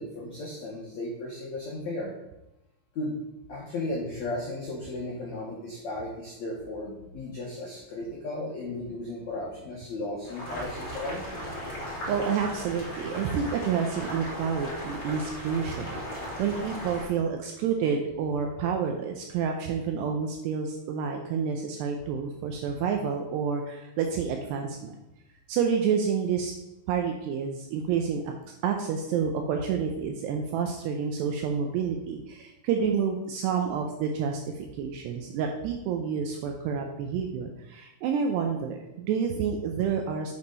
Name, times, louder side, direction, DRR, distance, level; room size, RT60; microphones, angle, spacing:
voice 1, 0.0-2.1 2.9-3.2 3.5-11.2, left 2 dB, 80° left, -4 dB, 1.6 m, -35 dB
Boiling, 10.2-17.0, equal, 30° left, 2.6 m, -37 dB
voice 2, 12.1-25.0 25.5-26.5 26.9-28.3 28.6-40.3, right 6 dB, 80° right, 3 dB, 2.5 m, -29 dB
8.5 x 6.5 x 4.0 m, 0.90 s
omnidirectional pair, 5.5 m